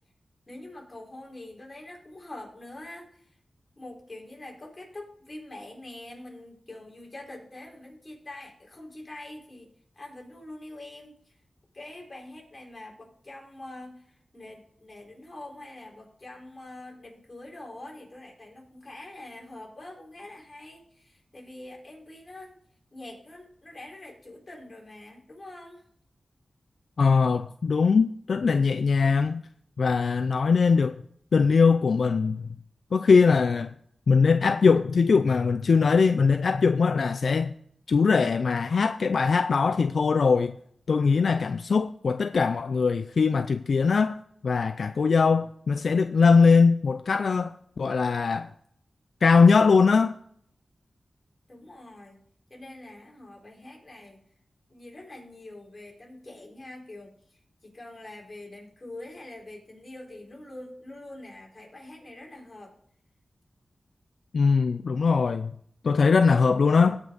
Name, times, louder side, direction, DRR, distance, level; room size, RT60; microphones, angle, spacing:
voice 1, 0.5-3.4 3.8-9.7 9.9-11.4 11.7-22.5 22.9-25.8 51.5-54.2 54.7-57.2 57.6-62.7, left 1 dB, 40° left, 4.5 m, -44 dB
voice 2, 27.0-29.4 29.8-31.0 31.3-32.5 32.9-33.7 34.1-37.5 37.9-40.6 40.9-44.2 44.4-48.5 49.2-50.2 64.3-65.5 65.8-67.0, left 5 dB, 75° left, 0.4 m, -21 dB
16.5 x 6.0 x 4.0 m
wide cardioid pair, 65°, 0 cm